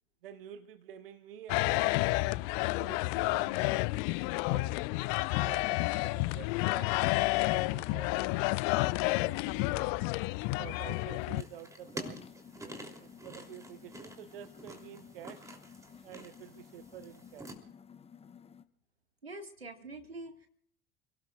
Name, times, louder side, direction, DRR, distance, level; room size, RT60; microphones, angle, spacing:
voice 1, 0.2-3.9 4.4-4.8 5.1-6.9 7.5-8.7 9.0-9.9 10.6-12.3 12.6-15.5 16.0-17.5, right 10 dB, 70° right, 12 dB, 1.0 m, -50 dB
sound 1, 1.5-11.4, left 22 dB, 50° left, 0.6 m, -30 dB
sound 2, 8.7-9.7 10.0-10.1 10.5-10.6 10.9-18.6, left 7 dB, 20° left, 1.1 m, -54 dB
sound 3, 11.4-17.6, right 1 dB, 10° right, 3.1 m, -48 dB
voice 2, 19.2-20.5, right 2 dB, 90° right, 6 dB, 1.9 m, -45 dB
29.5 x 17.5 x 2.4 m, 0.67 s
figure-of-eight pair, 70°, 30 cm